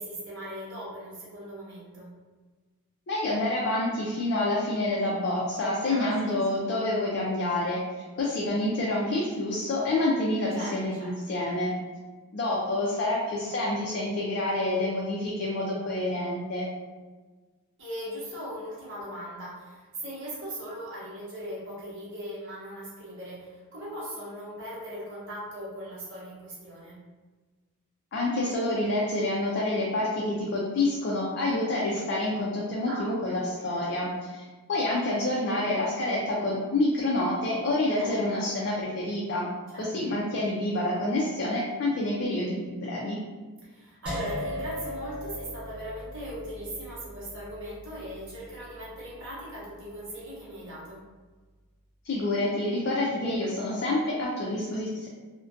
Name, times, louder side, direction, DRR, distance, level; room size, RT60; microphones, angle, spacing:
voice 1, 0.0-2.1 5.9-6.4 10.5-11.2 17.8-27.0 32.9-33.8 37.9-38.7 39.7-39.9 43.6-51.0, equal, 55° right, -7 dB, 0.8 m, -39 dB
voice 2, 3.1-11.7 12.3-16.7 28.1-34.4 34.7-39.5 39.8-43.2 52.0-55.1, left 1 dB, 50° left, -4 dB, 0.4 m, -28 dB
sound 1, 44.1-50.0, left 1 dB, 5° right, 0.7 m, -38 dB
2.5 x 2.1 x 2.5 m, 1.3 s
head